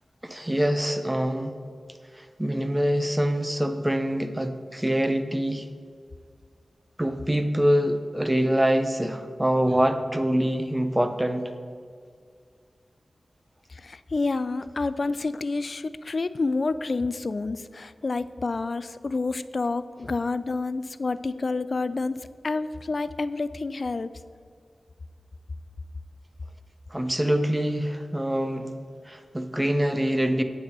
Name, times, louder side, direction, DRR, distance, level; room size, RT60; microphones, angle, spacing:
voice 1, 0.2-1.6 2.2-5.7 7.0-11.5 26.9-28.7 29.1-30.4, equal, 15° right, 9 dB, 0.6 m, -25 dB
voice 2, 13.7-24.1, left 3 dB, 60° left, 15 dB, 0.3 m, -29 dB
8.4 x 4.2 x 6.7 m, 2.1 s
cardioid pair, 55°, 0 cm